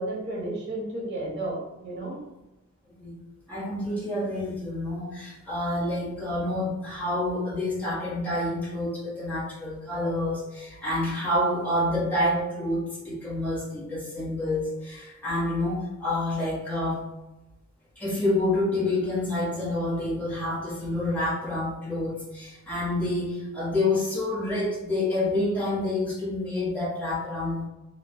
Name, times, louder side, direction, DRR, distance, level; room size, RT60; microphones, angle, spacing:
voice 1, 0.0-2.2, right 1 dB, 55° right, -4 dB, 0.8 m, -32 dB
voice 2, 2.9-3.2 3.5-17.0 18.0-27.7, left 1 dB, 10° left, -9 dB, 0.9 m, -28 dB
3.0 x 2.1 x 2.5 m, 0.99 s
head